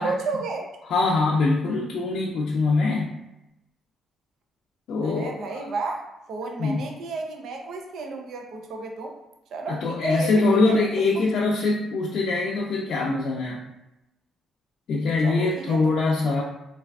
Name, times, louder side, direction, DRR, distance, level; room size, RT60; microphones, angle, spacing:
voice 1, 0.0-0.7 5.0-9.1 9.5-10.8 11.1-11.2 15.2-16.4, right 3 dB, 70° right, 3 dB, 0.5 m, -33 dB
voice 2, 0.8-3.1 4.9-5.7 6.6-6.9 9.7-13.6 14.9-16.4, left 3 dB, 70° left, -3 dB, 0.4 m, -23 dB
3.3 x 2.4 x 2.3 m, 0.91 s
cardioid pair, 90°, 0 cm